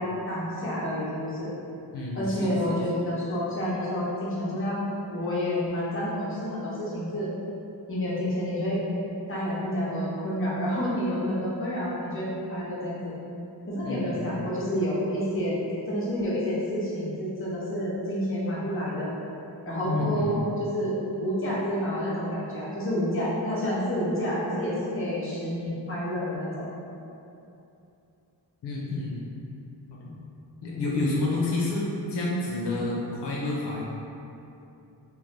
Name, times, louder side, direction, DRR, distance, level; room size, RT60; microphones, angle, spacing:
voice 1, 0.0-1.5 2.1-4.8 5.1-7.3 7.9-8.8 9.0-13.1 13.7-15.6 15.9-19.1 19.6-26.7, equal, 30° left, -7 dB, 0.6 m, -29 dB
voice 2, 1.9-2.8 13.8-14.3 19.8-20.3 28.6-29.2 29.9-30.2 30.6-33.8, left 2 dB, 75° left, -5 dB, 0.5 m, -29 dB
2.6 x 2.0 x 3.0 m, 2.7 s
wide cardioid pair, 125°, 42 cm